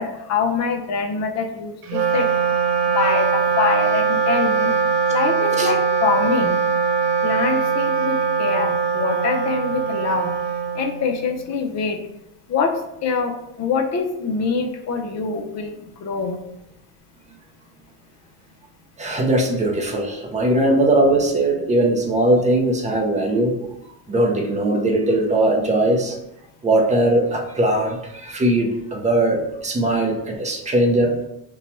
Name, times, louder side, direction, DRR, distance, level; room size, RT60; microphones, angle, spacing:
voice 1, 0.0-2.3 2.9-4.7 5.1-6.6 7.2-10.3 10.7-12.0 12.5-12.7 13.0-15.8 16.0-16.4, left 5 dB, 40° left, 4 dB, 0.6 m, -24 dB
Wind instrument woodwind instrument, 1.8-11.4, right 5 dB, 85° right, 0.6 m, -21 dB
voice 2, 19.0-23.5 24.1-26.2 26.6-31.1, right 1 dB, 15° right, 1 dB, 0.5 m, -19 dB
2.7 x 2.3 x 4.1 m, 0.83 s
supercardioid pair, 110°, 44 cm